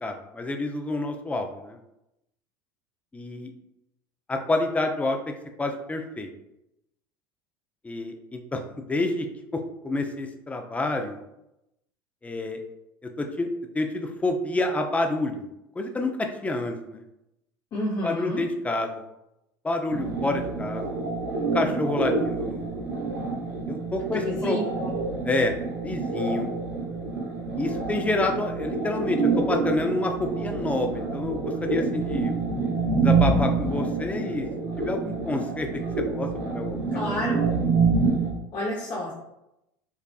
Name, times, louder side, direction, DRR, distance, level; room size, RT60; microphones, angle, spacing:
voice 1, 0.0-1.8 3.1-3.5 4.3-5.2 5.6-6.3 7.8-8.6 8.9-9.3 9.8-11.2 12.2-12.6 13.2-13.5 13.7-15.5 15.8-17.0 18.0-19.0 19.6-21.0 21.5-22.7 23.7-24.6 25.3-25.5 25.8-26.5 27.6-32.4 33.0-34.5 34.8-35.7 36.2-37.2, left 2 dB, 10° left, 4 dB, 0.5 m, -28 dB
voice 2, 17.7-18.4 24.1-24.9 36.9-37.5 38.5-39.1, left 1 dB, 40° left, -6 dB, 0.9 m, -30 dB
sound 1, 19.9-38.3, right 4 dB, 85° right, 0.9 m, -27 dB
4.7 x 2.5 x 2.3 m, 0.88 s
hypercardioid pair, 80°, 11 cm